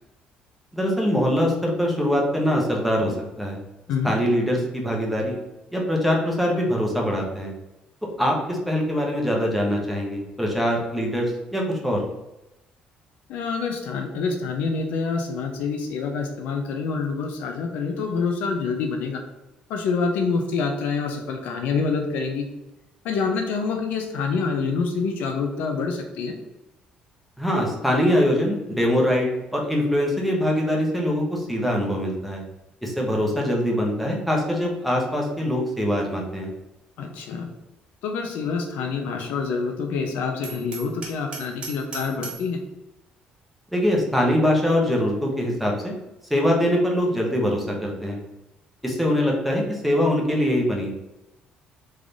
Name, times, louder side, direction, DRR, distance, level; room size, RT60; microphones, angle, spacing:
voice 1, 0.7-3.6 4.0-5.4 5.7-7.5 8.2-12.0 27.4-32.4 32.8-36.5 43.7-45.9 46.3-48.2 48.8-50.9, equal, ahead, -2 dB, 0.8 m, -23 dB
voice 2, 13.3-19.2 19.7-22.5 23.0-26.3 37.0-37.5 38.0-42.6, left 4 dB, 75° left, 4 dB, 0.6 m, -26 dB
Hammer, 40.4-42.5, right 6 dB, 35° right, 1.1 m, -37 dB
3.7 x 3.3 x 3.9 m, 0.95 s
cardioid pair, 170°, 3 cm